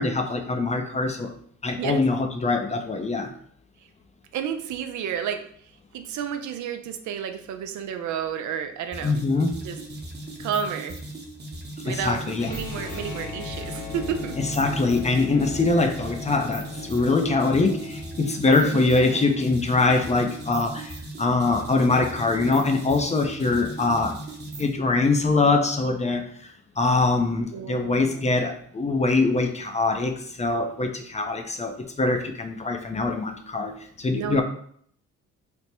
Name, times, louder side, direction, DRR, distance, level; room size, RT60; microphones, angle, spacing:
voice 1, 0.0-1.3 1.6-3.3 9.0-9.6 11.8-12.5 14.4-24.2 24.6-26.2 26.8-33.7 34.0-34.4, left 3 dB, 25° left, 4 dB, 0.5 m, -23 dB
voice 2, 4.3-5.4 5.9-9.1 9.6-9.8 10.4-11.0 11.8-14.4 18.5-19.3 27.5-28.4 34.1-34.4, right 8 dB, 70° right, 7 dB, 0.5 m, -31 dB
sound 1, 8.9-24.8, right 1 dB, 35° right, 0.9 m, -38 dB
sound 2, 12.4-18.4, left 4 dB, 80° left, 0.8 m, -38 dB
3.4 x 2.0 x 4.2 m, 0.62 s
cardioid pair, 90°, 30 cm